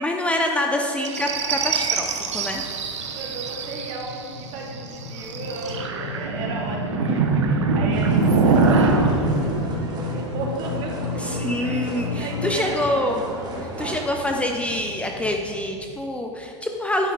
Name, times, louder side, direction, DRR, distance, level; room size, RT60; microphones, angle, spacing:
voice 1, 0.0-2.6 11.2-13.2 13.6-17.1, left 1 dB, 10° left, 2 dB, 0.6 m, -26 dB
sound 1, 1.0-10.7 12.5-13.4 14.3-15.5, right 4 dB, 90° right, 1.1 m, -24 dB
sound 2, 2.8-12.5, left 5 dB, 80° left, 1.0 m, -34 dB
voice 2, 2.9-13.0 13.8-14.1, right 3 dB, 45° right, -1 dB, 2.2 m, -35 dB
sound 3, 7.9-14.1, right 2 dB, 30° right, 1.7 m, -35 dB
9.6 x 7.2 x 3.9 m, 2.4 s
hypercardioid pair, 115°, 15 cm